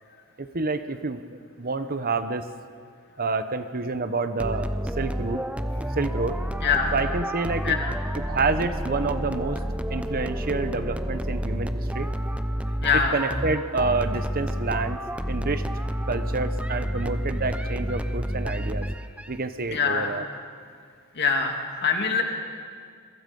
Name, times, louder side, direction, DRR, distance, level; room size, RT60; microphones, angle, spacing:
voice 1, 0.4-2.5 3.2-4.7 5.0-5.4 6.0-6.4 6.9-7.8 8.1-9.6 9.9-12.1 13.1-15.0 15.3-15.6 16.1-18.9 19.3-20.3, right 3 dB, 40° right, 10 dB, 0.9 m, -28 dB
sound 1, 4.4-19.3, equal, 5° right, 0.7 m, -29 dB
voice 2, 6.6-6.9 7.6-7.9 12.8-13.2 19.7-20.1 21.1-22.2, left 5 dB, 50° left, 2 dB, 2.7 m, -24 dB
28.0 x 23.0 x 5.4 m, 2.2 s
head